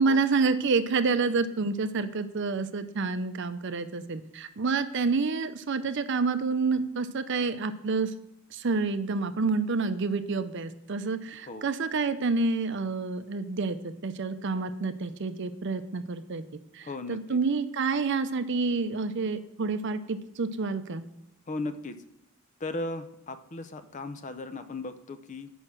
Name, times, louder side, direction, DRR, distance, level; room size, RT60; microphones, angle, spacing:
voice 1, 0.0-8.1 8.5-16.4 16.7-21.0, right 4 dB, 60° right, 11 dB, 0.6 m, -28 dB
voice 2, 11.3-11.7 16.8-17.4 21.5-22.0 22.6-25.5, left 2 dB, 35° left, 10 dB, 0.6 m, -37 dB
6.7 x 5.4 x 6.0 m, 0.86 s
head